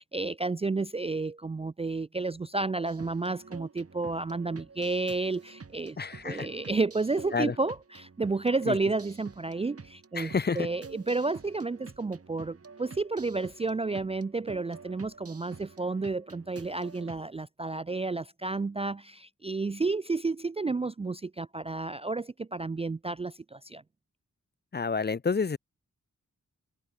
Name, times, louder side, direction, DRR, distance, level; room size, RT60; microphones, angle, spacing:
voice 1, 0.0-6.0 6.2-23.8, right 3 dB, 20° right, 0.4 m, -31 dB
sound 1, 2.9-17.3, right 4 dB, 50° right, 4.6 m, -49 dB
voice 2, 6.0-6.5 7.3-7.5 8.7-8.8 10.2-10.7 24.7-25.6, left 5 dB, 35° left, 0.6 m, -29 dB
open air
wide cardioid pair, 125°, 31 cm